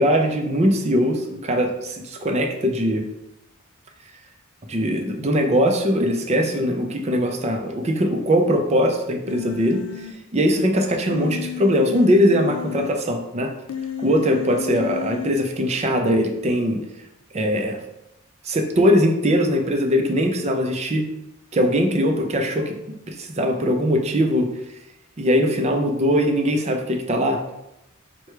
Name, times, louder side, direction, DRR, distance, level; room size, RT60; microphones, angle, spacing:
voice 1, 0.0-3.1 4.7-9.8 10.3-13.5 14.0-16.8 17.3-17.8 18.4-21.0 21.5-22.7 23.1-24.5 25.2-27.4, equal, 30° right, 4 dB, 0.5 m, -21 dB
Human voice, 9.3-10.1 11.1-12.9 13.7-15.3, left 9 dB, 90° left, 0.5 m, -32 dB
4.6 x 2.2 x 4.5 m, 0.88 s
head